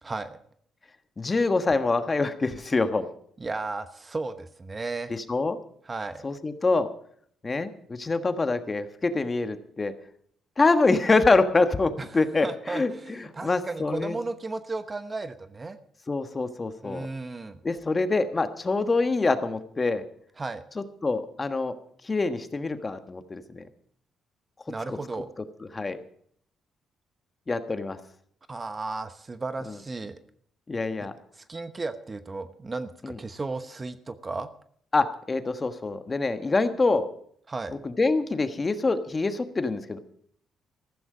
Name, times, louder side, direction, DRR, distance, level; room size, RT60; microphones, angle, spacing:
voice 1, 0.0-0.4 3.4-5.1 5.9-6.3 12.0-15.8 16.8-17.6 20.4-20.6 24.7-25.3 28.5-30.2 31.0-31.1 31.3-34.5 37.5-37.8, right 3 dB, 25° right, 11 dB, 1.0 m, -34 dB
voice 2, 1.2-3.1 5.1-5.6 6.2-6.9 7.4-9.9 10.6-14.2 16.1-17.1 17.6-20.0 21.0-21.7 22.0-23.7 24.9-25.0 25.7-26.0 27.5-28.0 30.7-31.1 33.0-33.2 34.9-37.1 37.8-40.0, left 3 dB, 25° left, 9 dB, 1.4 m, -25 dB
14.5 x 14.0 x 5.0 m, 0.62 s
cardioid pair, 90°, 0 cm